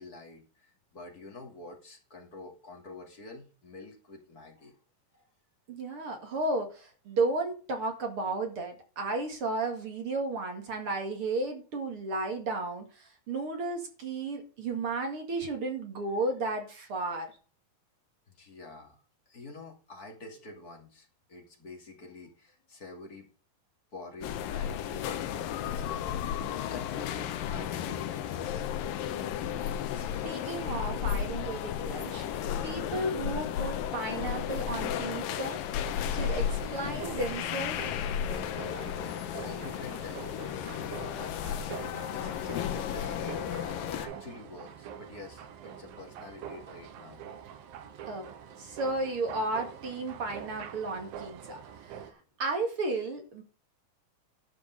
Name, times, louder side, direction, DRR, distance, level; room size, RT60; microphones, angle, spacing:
voice 1, 0.0-4.7 18.3-19.0 19.3-23.3 23.9-26.4 26.7-28.6 38.4-40.3 40.6-43.4 43.7-47.2, left 3 dB, 30° left, 1 dB, 2.5 m, -48 dB
voice 2, 5.7-17.4 29.9-32.3 32.6-35.6 36.1-37.9 48.1-48.3 48.6-53.4, right 2 dB, 45° right, 4 dB, 2.4 m, -33 dB
sound 1, 24.2-44.1, left 9 dB, 80° left, 2.6 m, -34 dB
sound 2, 36.2-52.1, right 8 dB, 90° right, 3.0 m, -45 dB
12.5 x 5.1 x 6.6 m, 0.37 s
omnidirectional pair, 4.1 m